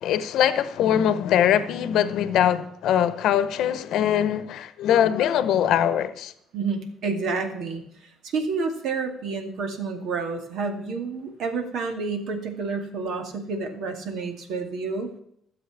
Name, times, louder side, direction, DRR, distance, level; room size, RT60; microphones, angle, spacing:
voice 1, 0.0-6.3, left 10 dB, 75° left, 0.8 m, -22 dB
voice 2, 6.5-15.1, right 4 dB, 70° right, 2.3 m, -29 dB
13.0 x 7.4 x 7.3 m
cardioid pair, 80°, 0 cm